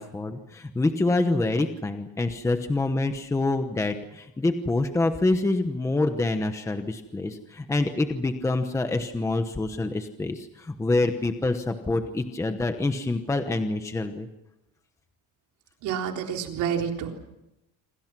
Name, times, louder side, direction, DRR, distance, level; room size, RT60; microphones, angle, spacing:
voice 1, 0.0-14.3, left 2 dB, 10° left, 7 dB, 1.0 m, -26 dB
voice 2, 15.8-17.2, right 8 dB, 55° right, 2 dB, 3.9 m, -29 dB
27.5 x 26.0 x 6.1 m, 0.92 s
cardioid pair, 180°, 35 cm